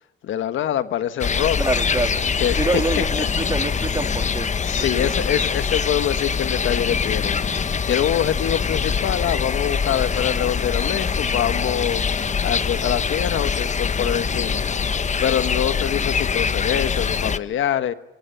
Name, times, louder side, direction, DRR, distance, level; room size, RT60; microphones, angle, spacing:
voice 1, 0.2-1.7 2.3-3.0 4.6-7.6 7.9-12.0 12.4-14.6 15.2-17.9, left 10 dB, 75° left, 1.5 m, -24 dB
sound 1, 1.2-17.4, left 6 dB, 35° left, 1.3 m, -23 dB
voice 2, 1.6-2.2 2.6-4.5 4.9-5.1, right 3 dB, 20° right, 2.3 m, -26 dB
27.5 x 25.5 x 6.9 m
cardioid pair, 90°, 20 cm